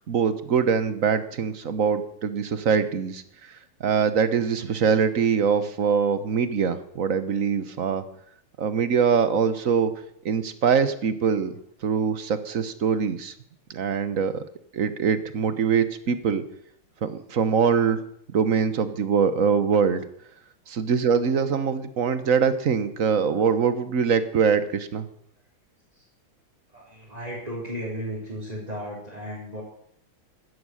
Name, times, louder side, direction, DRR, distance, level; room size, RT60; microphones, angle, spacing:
voice 1, 0.1-3.2 3.8-8.0 8.6-9.9 10.2-11.5 11.8-13.3 13.7-14.4 14.7-16.4 17.0-18.0 18.3-20.0 20.7-25.1, right 6 dB, 45° right, 12 dB, 1.3 m, -23 dB
voice 2, 26.7-29.6, equal, 15° right, -7 dB, 4.8 m, -35 dB
16.0 x 13.0 x 6.5 m, 0.69 s
omnidirectional pair, 2.3 m